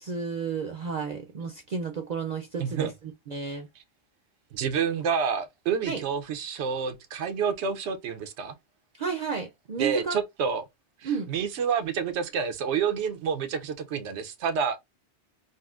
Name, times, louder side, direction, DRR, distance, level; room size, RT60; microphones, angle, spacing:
voice 1, 0.0-2.9 3.3-3.7 5.9-6.0 9.0-10.2 11.0-11.3, right 5 dB, 50° right, 0.5 m, -32 dB
voice 2, 2.6-2.9 4.5-8.5 9.8-10.6 11.0-14.8, right 6 dB, 90° right, 0.9 m, -28 dB
3.9 x 2.0 x 2.4 m
omnidirectional pair, 1.1 m